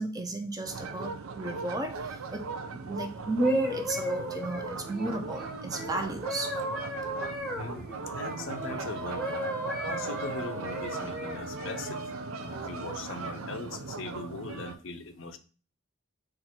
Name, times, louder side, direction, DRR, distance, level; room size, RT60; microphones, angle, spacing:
voice 1, 0.0-6.6, right 1 dB, 15° right, 5 dB, 0.5 m, -33 dB
sound 1, 0.6-14.8, right 4 dB, 85° right, 0.4 m, -39 dB
sound 2, 3.2-8.8 9.2-12.1 12.7-13.0, equal, ahead, 1.0 m, -37 dB
voice 2, 7.6-7.9 8.1-9.4 9.8-12.0 12.4-15.4, left 3 dB, 65° left, 10 dB, 0.5 m, -40 dB
Wind instrument woodwind instrument, 8.5-12.9, right 2 dB, 50° right, 1.1 m, -42 dB
4.1 x 2.5 x 4.3 m, 0.38 s
head